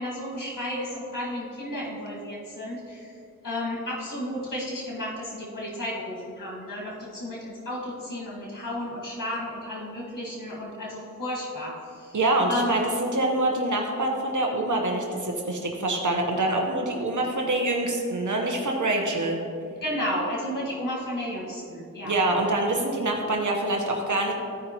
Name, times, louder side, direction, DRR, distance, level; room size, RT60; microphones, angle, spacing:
voice 1, 0.0-3.1 3.4-12.2 12.5-12.9 19.8-22.1, left 1 dB, 85° left, -5 dB, 1.9 m, -33 dB
voice 2, 12.1-19.4 22.0-24.3, right 2 dB, 70° right, 1 dB, 1.0 m, -25 dB
14.5 x 5.1 x 3.0 m, 2.5 s
cardioid pair, 40°, 32 cm